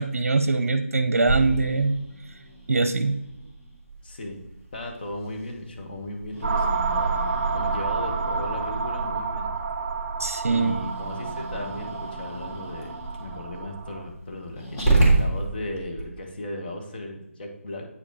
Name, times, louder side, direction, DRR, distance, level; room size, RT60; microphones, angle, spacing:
voice 1, 0.0-2.0 2.7-3.2 10.2-10.7, right 3 dB, 70° right, 9 dB, 0.7 m, -22 dB
Growling, 1.2-16.0, right 2 dB, 20° left, 1.9 m, -30 dB
voice 2, 4.0-4.4 4.7-7.2 7.5-9.5 10.4-17.9, left 1 dB, 40° left, 1 dB, 1.5 m, -36 dB
sound 1, 6.4-14.0, right 4 dB, 35° right, 2.0 m, -29 dB
8.5 x 5.2 x 4.2 m, 0.88 s
figure-of-eight pair, 160°, 8 cm